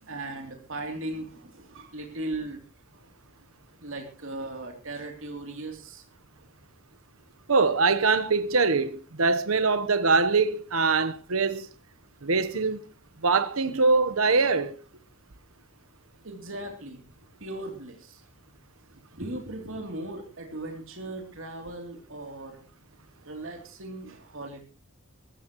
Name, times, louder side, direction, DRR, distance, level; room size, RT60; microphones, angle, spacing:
voice 1, 0.0-2.6 2.9-3.0 3.8-6.0 16.2-17.0 17.4-18.2 19.1-22.6 23.2-24.6, right 2 dB, 65° right, 3.0 m, -38 dB
voice 2, 7.5-11.7 12.2-12.8 13.2-14.8, right 4 dB, 80° right, 1.1 m, -23 dB
22.0 x 14.0 x 3.0 m
head